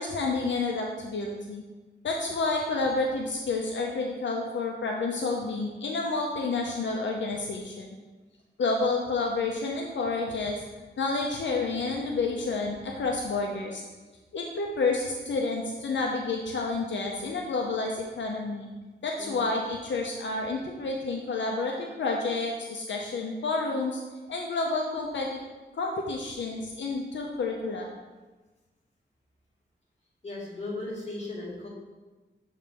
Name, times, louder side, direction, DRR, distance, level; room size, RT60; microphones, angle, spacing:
voice 1, 0.0-1.6 2.0-8.0 8.6-10.6 11.0-13.8 14.3-18.7 19.0-24.0 24.3-25.4 25.7-27.9, left 3 dB, 80° left, 0 dB, 0.7 m, -29 dB
voice 2, 30.2-31.7, left 2 dB, 35° left, -6 dB, 2.1 m, -36 dB
6.8 x 3.2 x 5.2 m, 1.2 s
wide cardioid pair, 120°, 19 cm